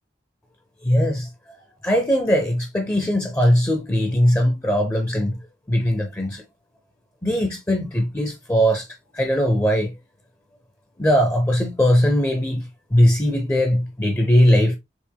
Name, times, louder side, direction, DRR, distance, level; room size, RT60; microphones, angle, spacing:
voice 1, 0.8-1.3 1.8-5.4 5.7-6.4 7.2-8.9 9.1-9.9 11.0-14.8, equal, 15° left, 0.4 m, -20 dB
4.7 x 3.2 x 2.2 m
head